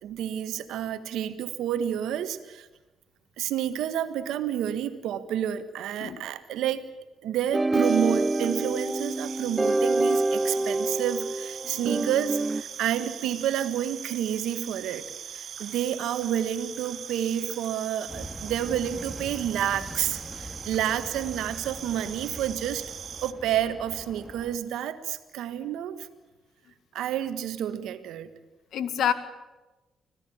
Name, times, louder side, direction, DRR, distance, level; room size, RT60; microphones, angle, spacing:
voice 1, 0.0-2.7 3.4-6.9 7.2-15.1 15.3-22.8 23.2-26.1 26.9-28.3, right 10 dB, 80° right, 11 dB, 1.5 m, -29 dB
sound 1, 7.5-12.6, right 2 dB, 25° right, 0.7 m, -26 dB
sound 2, 7.8-23.3, right 8 dB, 65° right, 1.1 m, -41 dB
sound 3, 18.1-24.6, right 1 dB, 5° right, 2.7 m, -42 dB
voice 2, 28.7-29.1, left 9 dB, 70° left, 11 dB, 1.9 m, -28 dB
26.0 x 16.5 x 8.7 m, 1.1 s
supercardioid pair, 50°, 0 cm